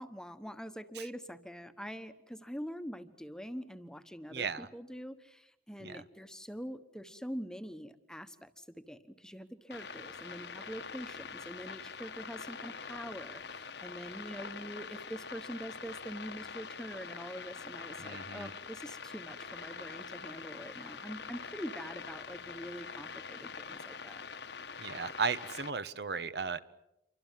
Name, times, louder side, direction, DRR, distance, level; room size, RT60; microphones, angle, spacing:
voice 1, 0.0-24.2, equal, 5° left, 9 dB, 1.2 m, -44 dB
voice 2, 4.3-4.7 5.8-6.0 18.0-18.5 24.8-26.6, right 5 dB, 70° right, 13 dB, 1.2 m, -35 dB
sound 1, 9.7-25.7, left 5 dB, 75° left, 1.5 m, -45 dB
28.5 x 24.5 x 7.5 m, 0.86 s
head